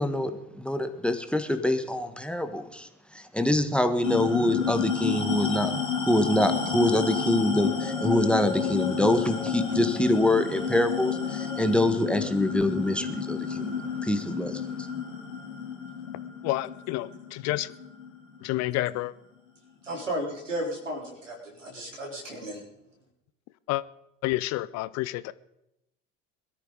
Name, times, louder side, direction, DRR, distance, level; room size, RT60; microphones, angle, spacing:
voice 1, 0.0-5.7 6.0-14.9, left 1 dB, 5° left, 8 dB, 1.5 m, -25 dB
sound 1, 4.0-18.9, left 6 dB, 85° left, 3.1 m, -31 dB
voice 2, 16.4-17.7 18.4-19.1 23.7-23.8 24.2-25.3, left 17 dB, 45° left, 18 dB, 0.7 m, -29 dB
voice 3, 19.8-22.6, equal, 90° right, -2 dB, 4.0 m, -34 dB
22.0 x 13.0 x 4.0 m, 0.86 s
figure-of-eight pair, 70°, 37 cm